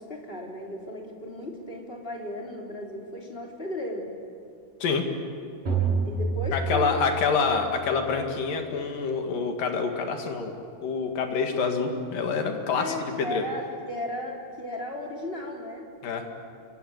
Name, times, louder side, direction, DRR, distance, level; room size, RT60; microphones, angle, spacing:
voice 1, 0.0-4.1 6.0-7.4 12.7-15.9, left 1 dB, 15° left, 0 dB, 3.4 m, -35 dB
sound 1, 5.7-7.6, right 4 dB, 45° right, 8.1 m, -28 dB
voice 2, 6.5-10.5 10.8-13.4 16.0-16.2, left 5 dB, 70° left, 4 dB, 3.7 m, -27 dB
29.0 x 24.5 x 8.1 m, 2.4 s
omnidirectional pair, 4.1 m